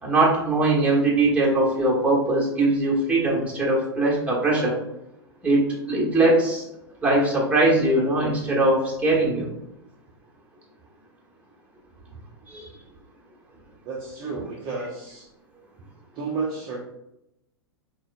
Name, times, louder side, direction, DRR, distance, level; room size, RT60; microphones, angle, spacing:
voice 1, 0.0-4.8 5.4-6.6 7.0-9.5 12.5-12.7, right 2 dB, 10° right, -4 dB, 1.3 m, -21 dB
voice 2, 13.8-15.3 16.1-16.8, right 4 dB, 30° right, -3 dB, 0.7 m, -31 dB
6.0 x 2.2 x 2.5 m, 0.83 s
figure-of-eight pair, 95°, 14 cm